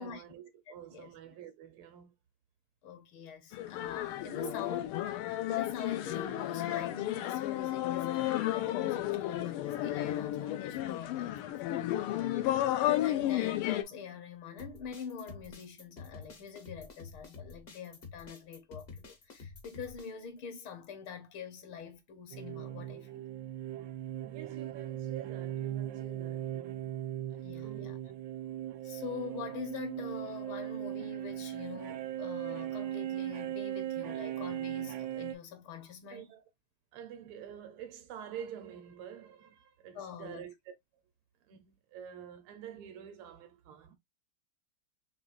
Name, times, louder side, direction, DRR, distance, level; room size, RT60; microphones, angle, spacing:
voice 1, 0.0-2.1 4.4-4.7 10.9-11.3 24.2-27.1 27.6-27.9 36.1-36.4 36.9-40.7 41.4-44.0, right 9 dB, 85° right, 1.7 m, -48 dB
voice 2, 0.7-1.1 2.8-4.9 5.2-11.6 12.4-12.6 13.0-23.2 27.3-28.0 28.8-36.3 39.9-40.5, left 6 dB, 70° left, 1.7 m, -45 dB
sound 1, 3.5-13.8, left 14 dB, 90° left, 1.5 m, -32 dB
sound 2, 14.6-20.1, left 4 dB, 55° left, 0.6 m, -49 dB
sound 3, 22.3-35.3, right 12 dB, 70° right, 1.1 m, -38 dB
5.1 x 3.1 x 2.4 m
omnidirectional pair, 2.4 m